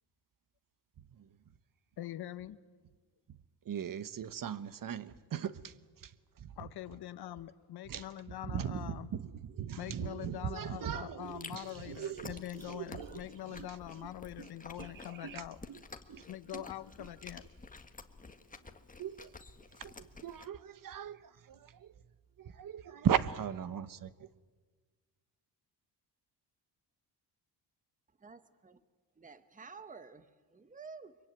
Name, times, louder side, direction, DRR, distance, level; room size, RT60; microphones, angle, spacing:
voice 1, 2.0-2.6 6.6-9.1 9.8-15.7 16.3-17.5, left 12 dB, 65° left, 1.2 m, -44 dB
voice 2, 3.7-5.7 6.4-6.5 7.9-8.0 8.5-8.9 9.6-12.3 12.7-13.1 13.5-13.7 15.2-15.4 16.1-16.2 16.5-16.6 19.0-19.3 19.8-19.9 20.2-21.2 21.5-21.9 22.4-24.1, right 9 dB, 50° right, 1.2 m, -37 dB
Chewing mastication, 11.2-20.5, left 3 dB, 20° left, 1.6 m, -51 dB
voice 3, 28.2-28.8 29.2-31.2, right 4 dB, 20° right, 1.2 m, -51 dB
25.0 x 23.0 x 9.2 m
cardioid pair, 85°, 41 cm